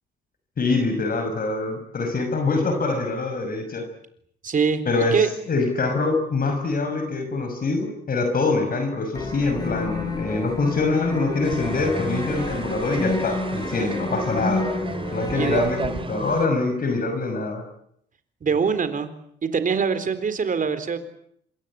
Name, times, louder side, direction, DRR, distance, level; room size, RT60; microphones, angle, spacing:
voice 1, 0.6-3.8 4.8-14.6 15.1-17.6, left 3 dB, 45° left, 6 dB, 6.2 m, -24 dB
voice 2, 4.4-4.8 5.1-5.3 15.3-15.6 18.4-19.1 19.4-21.0, right 5 dB, 40° right, 11 dB, 3.9 m, -23 dB
Ambience Cello Hall, 9.1-15.7, left 2 dB, 20° left, 6.7 m, -30 dB
sound 1, 11.4-16.5, right 3 dB, 25° right, 2.7 m, -33 dB
27.0 x 22.5 x 8.8 m, 0.71 s
cardioid pair, 90°, 20 cm